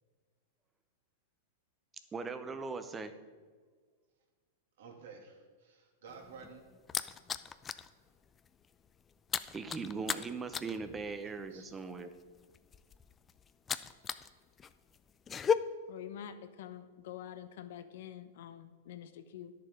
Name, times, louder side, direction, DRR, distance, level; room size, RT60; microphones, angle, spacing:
voice 1, 2.1-3.1 9.5-12.1, right 4 dB, 20° right, 10 dB, 0.8 m, -39 dB
voice 2, 4.8-6.6 11.2-11.7, right 5 dB, 70° right, 2 dB, 2.2 m, -52 dB
sound 1, 6.1-7.9 8.2-8.5 8.7-14.3 14.6-15.5, left 7 dB, 20° left, 0.4 m, -36 dB
voice 3, 15.9-19.5, left 10 dB, 65° left, 11 dB, 0.9 m, -47 dB
10.5 x 6.9 x 5.0 m, 1.5 s
hypercardioid pair, 115°, 0 cm